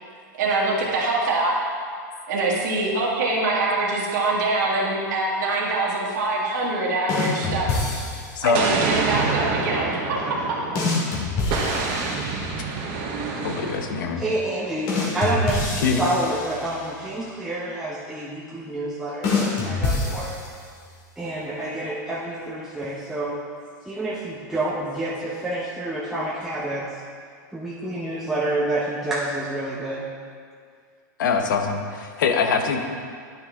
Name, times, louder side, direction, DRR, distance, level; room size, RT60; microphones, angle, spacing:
voice 1, 0.4-1.5 2.3-7.8 8.4-10.2, right 2 dB, 65° right, -4 dB, 1.8 m, -24 dB
sound 1, 7.1-8.5 10.7-12.7 14.9-17.0 19.2-20.8, left 3 dB, 50° left, 2.2 m, -26 dB
Explosion, 8.5-11.0 11.5-14.1, right 4 dB, 45° right, 1.1 m, -26 dB
voice 2, 13.4-14.2 15.8-16.0 31.2-32.8, left 5 dB, 80° left, 5 dB, 0.9 m, -23 dB
voice 3, 14.2-20.3 21.2-23.4 23.9-26.9 27.5-30.1, right 1 dB, 5° right, -7 dB, 0.9 m, -28 dB
10.0 x 6.2 x 3.5 m, 2.1 s
hypercardioid pair, 125°, 10 cm